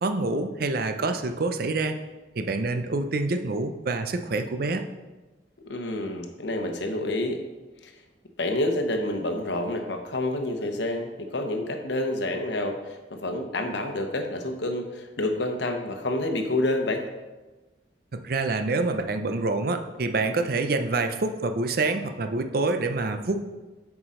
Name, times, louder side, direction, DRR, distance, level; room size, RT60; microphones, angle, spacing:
voice 1, 0.0-2.0 2.4-4.8 18.1-23.4, right 3 dB, 55° right, 7 dB, 0.5 m, -26 dB
voice 2, 5.7-7.4 7.8-7.9 8.4-17.0, left 1 dB, 80° left, 5 dB, 0.9 m, -28 dB
8.3 x 4.9 x 3.8 m, 1.2 s
head